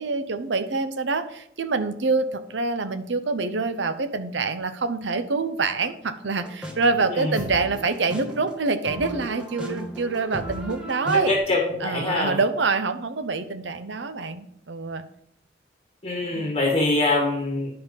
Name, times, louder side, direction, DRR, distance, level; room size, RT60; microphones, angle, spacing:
voice 1, 0.0-11.3 11.8-15.0 16.3-16.5, right 4 dB, 70° right, 11 dB, 0.8 m, -26 dB
sound 1, 6.4-11.4, right 1 dB, 5° right, 1.7 m, -37 dB
voice 2, 11.1-12.4 16.0-17.7, left 2 dB, 30° left, -1 dB, 1.8 m, -24 dB
10.5 x 5.7 x 5.2 m, 0.69 s
head